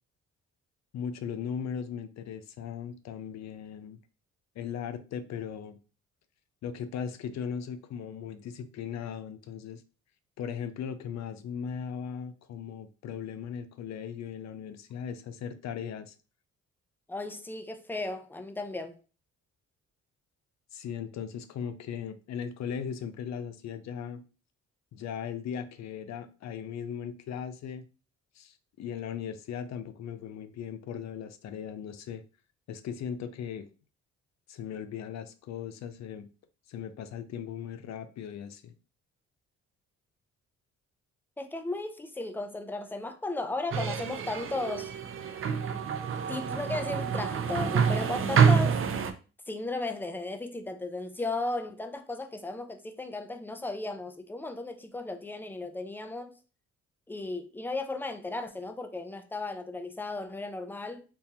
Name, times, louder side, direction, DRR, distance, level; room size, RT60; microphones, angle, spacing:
voice 1, 0.9-4.0 4.6-5.8 6.6-9.8 10.4-16.1 20.7-24.2 24.9-27.8 28.4-32.2 32.7-33.7 34.5-36.3 36.7-38.7, left 7 dB, 65° left, 0.6 m, -38 dB
voice 2, 17.1-19.0 41.4-44.9 46.3-48.8 49.5-56.3 57.1-61.0, left 2 dB, 5° left, 0.5 m, -35 dB
sound 1, 43.7-49.1, right 6 dB, 45° right, 0.5 m, -27 dB
3.7 x 2.7 x 2.7 m
cardioid pair, 90°, 30 cm